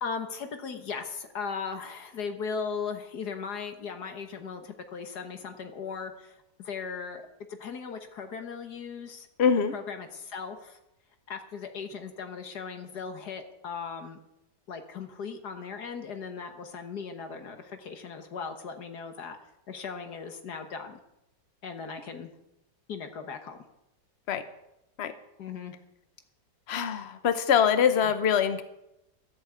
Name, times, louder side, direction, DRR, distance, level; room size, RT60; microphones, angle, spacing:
voice 1, 0.0-7.2 7.5-9.3 9.7-10.8 11.3-14.2 14.7-19.4 19.7-21.0 21.6-22.3 22.9-23.6 25.4-25.7 27.9-28.1, left 5 dB, 65° left, 7 dB, 1.8 m, -38 dB
voice 2, 9.4-9.7 24.3-24.4 25.0-25.1 26.7-28.6, left 7 dB, 45° left, 11 dB, 1.0 m, -24 dB
13.0 x 8.7 x 8.0 m, 0.88 s
omnidirectional pair, 1.9 m